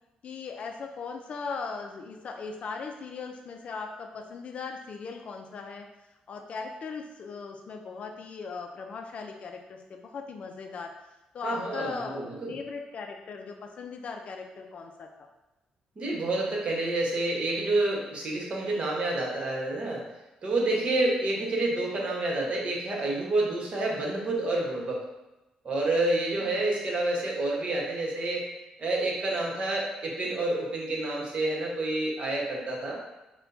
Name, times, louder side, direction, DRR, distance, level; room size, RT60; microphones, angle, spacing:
voice 1, 0.2-5.9 6.3-10.9 11.3-15.3 26.4-26.5, left 4 dB, 55° left, 4 dB, 0.4 m, -38 dB
voice 2, 11.4-12.6 16.0-20.0 20.4-25.0 25.6-28.5 28.8-33.0, right 2 dB, 45° right, -2 dB, 1.1 m, -28 dB
6.4 x 2.2 x 2.7 m, 1.0 s
cardioid pair, 95°, 3 cm